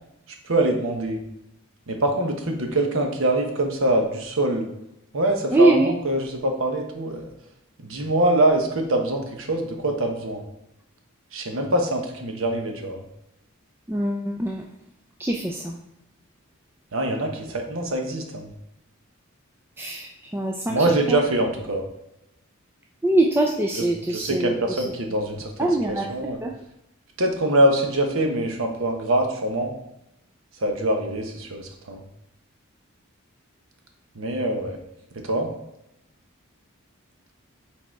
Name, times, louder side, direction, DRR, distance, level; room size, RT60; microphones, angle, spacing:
voice 1, 0.4-1.2 1.9-4.7 5.1-7.3 7.8-10.4 11.3-13.0 16.9-18.5 20.7-21.9 23.7-26.4 27.2-29.7 30.6-32.0 34.1-34.8 35.1-35.5, right 1 dB, 70° right, 3 dB, 1.1 m, -24 dB
voice 2, 5.5-5.9 13.9-14.7 15.2-15.8 19.8-20.8 21.1-21.2 23.0-24.5 25.6-26.5, right 1 dB, 10° right, 0 dB, 0.3 m, -23 dB
6.3 x 4.0 x 4.6 m, 0.84 s
head